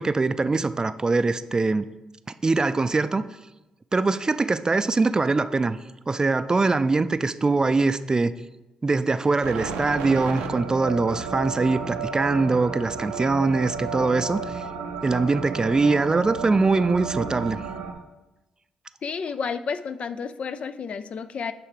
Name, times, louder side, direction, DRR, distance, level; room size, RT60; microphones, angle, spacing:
voice 1, 0.0-1.9 2.4-3.3 3.9-5.8 6.1-8.3 8.8-14.6 15.0-17.6, right 3 dB, 30° right, 13 dB, 0.4 m, -22 dB
sound 1, 9.4-17.9, right 5 dB, 85° right, 0.6 m, -32 dB
voice 2, 19.0-21.5, left 6 dB, 55° left, 12 dB, 0.4 m, -31 dB
8.9 x 3.4 x 4.9 m, 0.99 s
hypercardioid pair, 45°, 2 cm